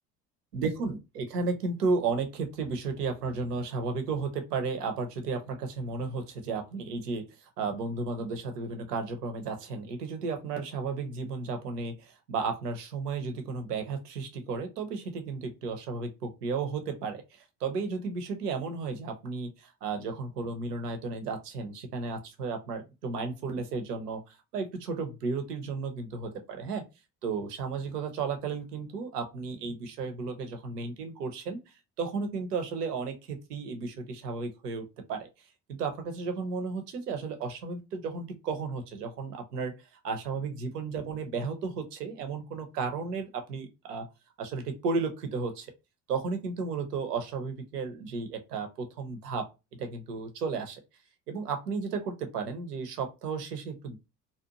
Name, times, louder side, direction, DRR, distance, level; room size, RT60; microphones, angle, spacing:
voice 1, 0.5-26.8 27.2-31.6 32.0-35.3 35.8-44.1 44.4-45.7 46.1-49.5 49.8-50.8 51.3-54.0, right 4 dB, 85° right, 6 dB, 0.6 m, -33 dB
2.6 x 2.1 x 2.7 m, 0.25 s
figure-of-eight pair, 55°, 46 cm